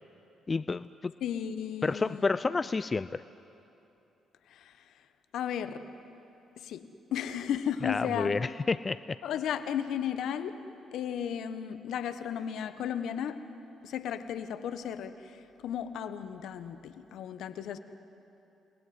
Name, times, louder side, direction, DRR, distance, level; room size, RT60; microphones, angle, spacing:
voice 1, 0.5-1.1 1.8-3.2 7.8-9.2, left 4 dB, 35° left, 16 dB, 0.5 m, -30 dB
voice 2, 1.2-2.3 4.5-4.8 5.3-5.9 6.6-8.4 9.2-10.6 10.9-13.5 13.8-17.8, left 9 dB, 70° left, 11 dB, 1.3 m, -35 dB
30.0 x 20.5 x 9.6 m, 2.9 s
hypercardioid pair, 45°, 0 cm